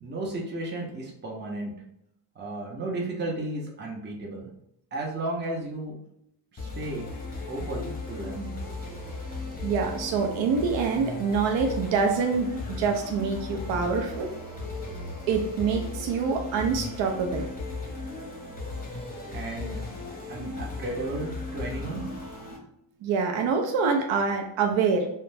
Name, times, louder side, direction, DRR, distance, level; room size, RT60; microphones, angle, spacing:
voice 1, 0.0-1.7 2.4-4.5 4.9-5.9 6.5-7.1 7.5-8.6 19.3-19.8 20.3-22.0, right 2 dB, 25° right, -1 dB, 0.6 m, -34 dB
sound 1, 6.6-22.6, left 3 dB, 20° left, 0.7 m, -36 dB
voice 2, 9.6-14.3 15.3-17.5 23.0-25.1, right 5 dB, 75° right, 2 dB, 0.5 m, -26 dB
2.4 x 2.1 x 3.2 m, 0.78 s
cardioid pair, 105°, 46 cm